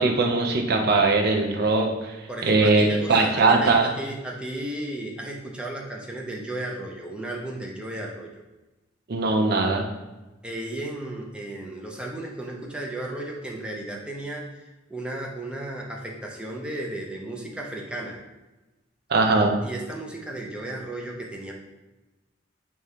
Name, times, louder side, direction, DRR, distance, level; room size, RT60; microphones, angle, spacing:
voice 1, 0.0-2.1 2.4-3.9 9.1-9.9 19.1-19.6, right 3 dB, 55° right, 3 dB, 0.5 m, -20 dB
voice 2, 2.3-8.3 10.4-14.6 14.9-18.2 19.6-21.5, right 1 dB, 5° right, -1 dB, 0.5 m, -34 dB
4.9 x 2.3 x 2.8 m, 1.1 s
head